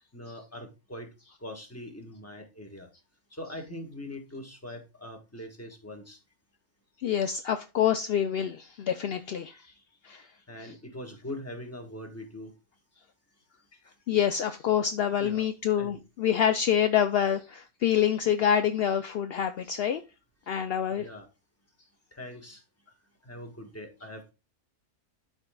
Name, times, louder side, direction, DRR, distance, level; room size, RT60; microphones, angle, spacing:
voice 1, 0.1-1.1 1.4-2.9 3.3-6.2 10.5-12.5 15.2-15.4 15.8-16.0 21.0-21.3 22.1-22.6 23.2-24.3, left 1 dB, 10° left, 1.4 m, -42 dB
voice 2, 7.0-9.7 10.0-10.3 10.6-10.7 14.1-20.0 20.5-21.1, left 9 dB, 65° left, 0.6 m, -26 dB
12.5 x 4.6 x 2.3 m
omnidirectional pair, 1.5 m